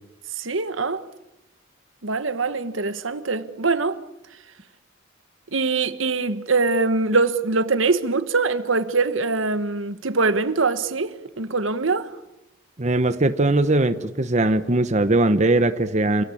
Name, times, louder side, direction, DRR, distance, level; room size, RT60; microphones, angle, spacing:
voice 1, 0.4-1.0 2.0-4.0 5.5-12.1, right 3 dB, 85° right, 1.4 m, -23 dB
voice 2, 12.8-16.2, right 2 dB, 35° right, 1.0 m, -20 dB
29.0 x 17.0 x 8.6 m
head